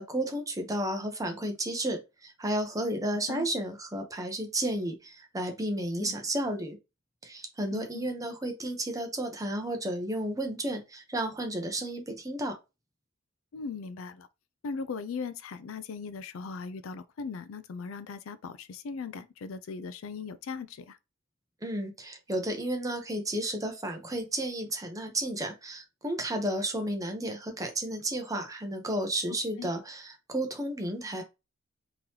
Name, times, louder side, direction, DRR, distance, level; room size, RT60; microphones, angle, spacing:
voice 1, 0.0-6.8 7.2-12.5 21.6-31.2, right 1 dB, 15° right, 0.8 m, -32 dB
voice 2, 7.7-8.1 13.5-14.3 14.6-21.0 29.3-29.7, left 5 dB, 80° left, 0.4 m, -39 dB
3.8 x 3.0 x 2.8 m
head